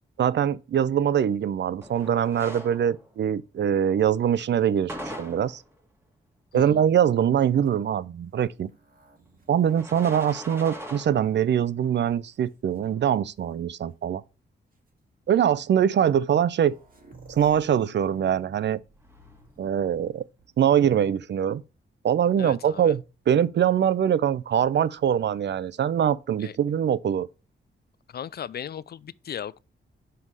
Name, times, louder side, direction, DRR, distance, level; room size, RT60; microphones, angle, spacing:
voice 1, 0.2-5.6 6.5-8.7 9.5-14.2 15.3-16.8 17.3-18.8 19.6-20.2 20.6-21.6 22.0-27.3, right 9 dB, 60° right, 0.5 m, -23 dB
sound 1, 1.8-3.2 4.9-5.8 9.6-11.5 11.8-11.9 12.8-12.9 18.7-19.8, equal, 10° right, 2.0 m, -41 dB
sound 2, 7.5-11.4 12.1-12.8 13.9-14.0 14.7-14.9 16.0-16.1 16.3-20.8 22.7-23.4, right 2 dB, 45° right, 2.1 m, -55 dB
voice 2, 22.4-23.0 26.4-26.5 28.1-29.6, left 9 dB, 50° left, 0.4 m, -36 dB
5.7 x 5.5 x 4.7 m
cardioid pair, 65°, 21 cm